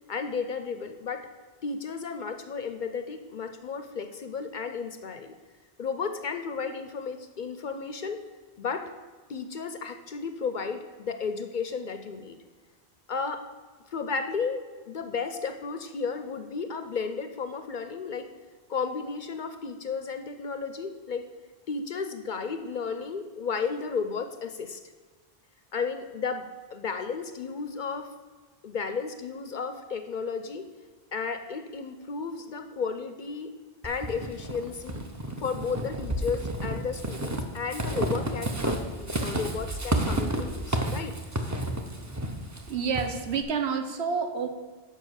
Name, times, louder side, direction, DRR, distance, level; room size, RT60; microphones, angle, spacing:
voice 1, 0.1-1.3 1.6-5.3 5.8-8.2 8.6-8.8 9.3-12.4 13.1-13.4 13.9-14.6 14.9-18.3 18.7-21.2 21.7-24.8 25.7-26.4 26.7-28.1 28.6-30.7 31.1-33.5 33.8-35.0 35.4-41.2, left 5 dB, 55° left, 8 dB, 0.6 m, -33 dB
Walk footsteps / Squeak, 33.8-43.4, right 1 dB, 20° right, 0.6 m, -31 dB
voice 2, 42.7-44.5, right 6 dB, 75° right, 7 dB, 1.1 m, -29 dB
7.3 x 5.5 x 6.3 m, 1.4 s
omnidirectional pair, 1.1 m